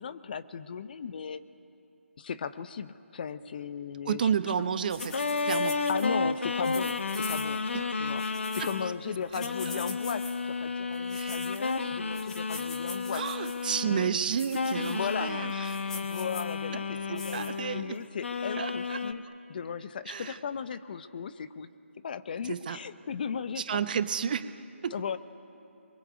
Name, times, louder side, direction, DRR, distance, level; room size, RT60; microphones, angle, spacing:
voice 1, 0.0-1.4 2.2-4.3 5.9-7.6 8.0-13.2 14.9-15.3 15.9-19.2 19.5-21.7 22.0-23.8 24.9-25.2, left 7 dB, 40° left, 13 dB, 0.9 m, -36 dB
voice 2, 4.1-5.8 7.7-7.8 8.6-8.7 9.3-9.4 11.1-11.3 13.1-15.7 17.1-18.0 18.6-19.0 20.1-20.4 22.4-22.8 23.7-24.9, right 7 dB, 40° right, 12 dB, 1.0 m, -31 dB
sound 1, 4.9-6.1 6.6-7.7 8.1-8.8 9.3-10.4 10.9-11.8 12.1-13.7 14.3-15.1 15.5-16.5 17.2-17.5, left 2 dB, 5° left, 1.8 m, -44 dB
sound 2, 5.0-9.0 9.4-14.2 14.5-17.9 18.2-19.1, left 4 dB, 60° left, 1.7 m, -32 dB
29.0 x 23.0 x 8.2 m, 2.7 s
figure-of-eight pair, 150°, 7 cm